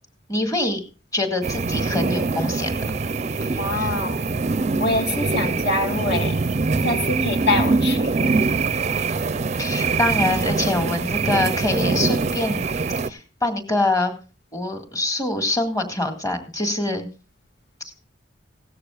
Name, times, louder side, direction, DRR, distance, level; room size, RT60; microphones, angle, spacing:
voice 1, 0.3-0.8 1.1-2.8 3.4-3.9 9.6-12.7 13.1-14.1 14.5-17.1, left 2 dB, 20° left, 6 dB, 1.9 m, -24 dB
sound 1, 1.4-13.1, right 4 dB, 35° right, 0.5 m, -23 dB
voice 2, 3.6-4.2 4.8-6.4 6.8-8.4, left 2 dB, 60° left, 4 dB, 2.4 m, -25 dB
17.0 x 13.5 x 2.4 m, 0.32 s
head